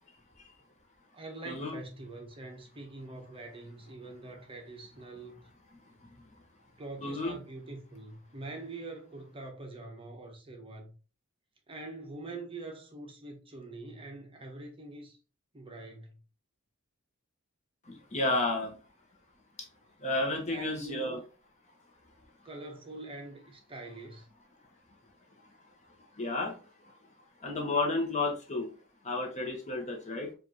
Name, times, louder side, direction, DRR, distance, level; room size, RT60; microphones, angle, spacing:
voice 1, 1.1-5.4 6.8-10.9 11.7-15.2 15.5-16.2 20.5-21.2 22.4-24.3, right 2 dB, 25° right, 0.8 m, -44 dB
voice 2, 7.0-7.4 17.9-18.8 20.0-21.2 26.2-26.6 27.4-28.7 29.0-30.3, left 2 dB, 35° left, 0.9 m, -31 dB
4.9 x 2.5 x 2.8 m
head